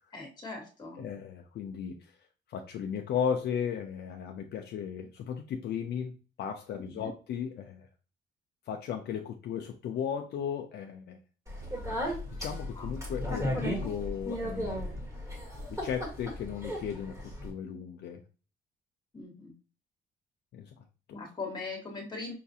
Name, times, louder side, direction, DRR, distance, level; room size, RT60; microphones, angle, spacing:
voice 1, 0.1-1.0 6.7-7.1 12.7-12.9 19.1-19.5 21.1-22.3, left 3 dB, 20° left, 1 dB, 1.4 m, -40 dB
voice 2, 1.0-2.1 2.5-7.9 8.7-11.2 12.4-14.9 15.7-18.2 20.5-21.2, left 8 dB, 60° left, 4 dB, 0.5 m, -36 dB
Speech, 11.5-17.5, equal, 15° right, 1.4 m, -35 dB
sound 1, 11.6-14.3, left 1 dB, 90° right, 0.8 m, -47 dB
5.7 x 2.4 x 2.7 m, 0.34 s
cardioid pair, 145°, 19 cm